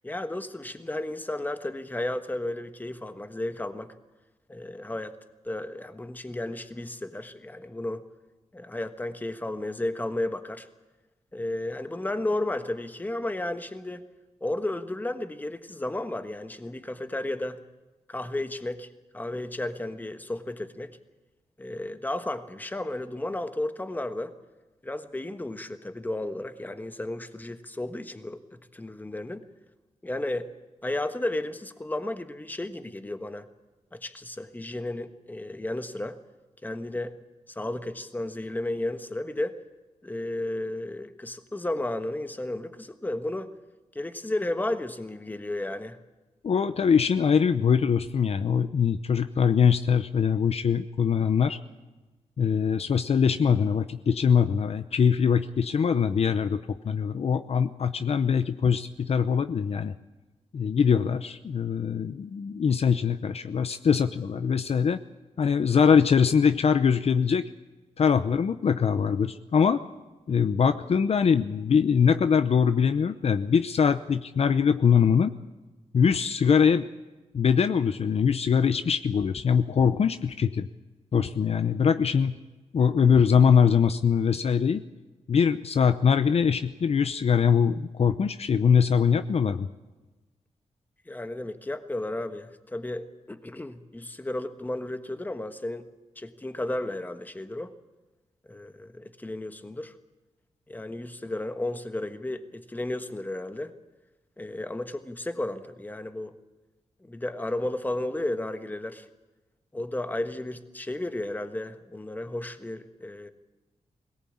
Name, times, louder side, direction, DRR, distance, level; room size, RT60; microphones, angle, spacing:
voice 1, 0.0-3.9 4.5-5.2 5.4-8.0 8.5-10.7 11.3-14.0 14.4-17.6 18.1-18.9 19.1-20.9 21.6-24.3 24.8-29.5 30.0-30.5 30.8-33.5 33.9-36.2 36.6-37.2 37.5-39.6 40.0-43.5 43.9-46.0 91.1-95.9 96.1-97.7 98.5-99.9 100.7-103.7 104.4-106.3 107.0-109.1 109.7-113.3, left 1 dB, 15° left, 9 dB, 1.4 m, -33 dB
voice 2, 46.4-51.6 52.4-59.9 60.5-65.0 65.4-67.5 68.0-69.8 70.3-75.3 75.9-76.9 77.3-80.7 81.1-82.4 82.7-84.8 85.3-89.7, left 6 dB, 55° left, 11 dB, 0.7 m, -22 dB
21.5 x 18.0 x 8.6 m, 1.2 s
wide cardioid pair, 110°, 12 cm